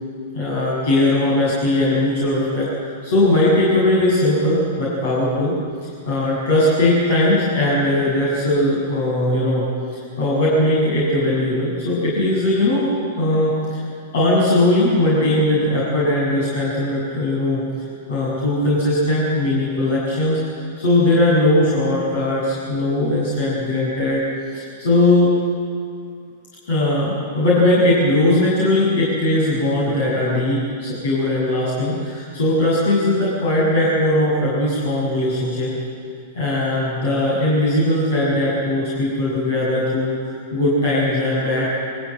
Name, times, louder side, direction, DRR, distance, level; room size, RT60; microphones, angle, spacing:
voice 1, 0.3-5.6 6.0-9.7 10.2-13.8 14.1-24.2 24.5-25.3 26.6-35.7 36.3-41.7, left 1 dB, 65° left, -6 dB, 7.0 m, -19 dB
22.5 x 14.5 x 9.0 m, 2.3 s
hypercardioid pair, 115°, 0 cm